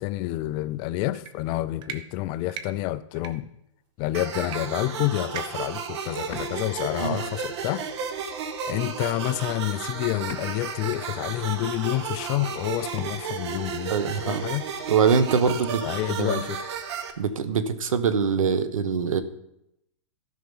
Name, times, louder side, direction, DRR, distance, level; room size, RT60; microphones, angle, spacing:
voice 1, 0.0-3.5 4.0-7.8 8.7-14.7 15.8-16.7, left 16 dB, 25° left, 15 dB, 0.3 m, -29 dB
sound 1, 1.1-1.3 1.8-2.0 2.5-2.7 3.2-3.3 4.5-4.6 4.8-4.9 5.3-5.7, right 8 dB, 30° right, 0.8 m, -36 dB
sound 2, 4.1-17.1, right 6 dB, 55° right, 1.2 m, -33 dB
Ocean, 6.2-17.4, left 5 dB, 45° left, 2.5 m, -47 dB
voice 2, 13.9-14.4 14.9-15.8 16.2-16.4 17.2-19.2, right 6 dB, 85° right, 12 dB, 1.1 m, -23 dB
13.5 x 5.6 x 5.4 m, 0.82 s
hypercardioid pair, 145°, 17 cm